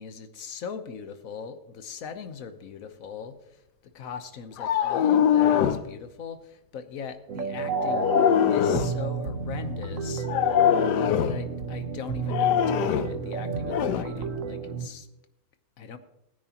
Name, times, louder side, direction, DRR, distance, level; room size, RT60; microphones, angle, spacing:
voice 1, 0.0-3.4 3.9-8.1 8.5-10.3 11.1-15.1 15.8-16.0, left 6 dB, 50° left, 9 dB, 1.1 m, -39 dB
sound 1, 4.6-5.9 7.7-9.0 10.2-11.4 12.3-13.2 13.7-14.0, left 9 dB, 70° left, 1.1 m, -22 dB
sound 2, 7.3-14.9, right 5 dB, 50° right, 1.2 m, -32 dB
20.0 x 9.4 x 3.0 m, 0.90 s
omnidirectional pair, 2.2 m